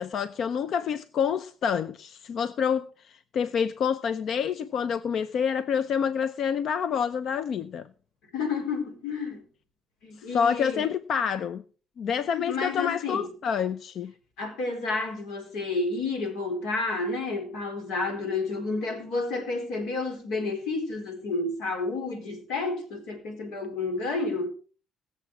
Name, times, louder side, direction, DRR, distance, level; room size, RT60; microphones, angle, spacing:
voice 1, 0.0-7.9 10.3-11.6 12.0-14.1, left 7 dB, 60° left, 0.6 m, -27 dB
voice 2, 8.3-9.4 10.0-10.8 12.3-13.3 14.4-24.5, left 3 dB, 90° left, 4.3 m, -30 dB
20.5 x 7.3 x 4.7 m
cardioid pair, 105°, 0 cm